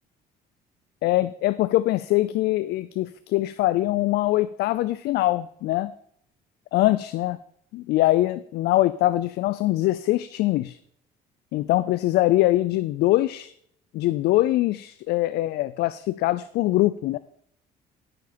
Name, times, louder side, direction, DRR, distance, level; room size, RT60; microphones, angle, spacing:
voice 1, 1.0-5.9 6.7-7.4 7.7-10.8 11.5-13.5 13.9-17.2, left 16 dB, 75° left, 14 dB, 0.4 m, -23 dB
10.5 x 5.8 x 5.0 m, 0.67 s
cardioid pair, 110°, 17 cm